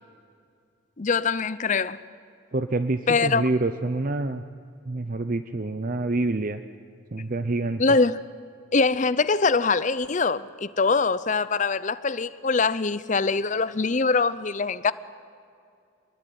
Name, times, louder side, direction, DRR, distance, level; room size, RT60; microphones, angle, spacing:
voice 1, 1.0-2.0 3.1-3.4 7.8-8.2 8.7-14.9, left 4 dB, 35° left, 0.6 m, -23 dB
voice 2, 2.5-4.4 4.9-6.6 7.1-7.8, right 2 dB, 40° right, 0.6 m, -27 dB
26.0 x 20.5 x 9.4 m
head